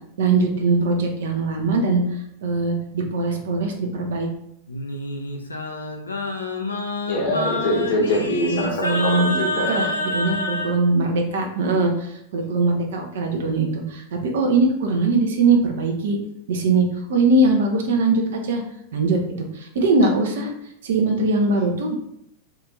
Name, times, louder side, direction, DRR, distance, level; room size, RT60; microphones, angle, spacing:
voice 1, 0.2-4.3 8.5-9.3 9.7-16.2 16.5-18.6 18.9-20.5 20.8-22.0, right 3 dB, 60° right, 2 dB, 0.6 m, -21 dB
Singing, 4.7-10.7, left 1 dB, 80° left, 0.4 m, -27 dB
voice 2, 7.1-9.9 10.1-10.2, left 1 dB, 55° left, 0 dB, 0.9 m, -24 dB
2.8 x 2.5 x 3.4 m, 0.75 s
figure-of-eight pair, 90°, 0 cm